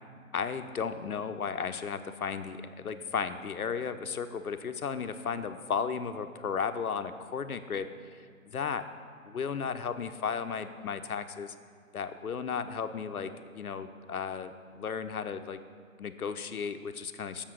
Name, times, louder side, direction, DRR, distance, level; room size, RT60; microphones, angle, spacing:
voice 1, 0.3-8.9 9.2-11.5 11.9-15.6 16.0-17.4, left 6 dB, 80° left, 10 dB, 0.7 m, -34 dB
7.3 x 6.8 x 6.1 m, 2.2 s
figure-of-eight pair, 145°, 43 cm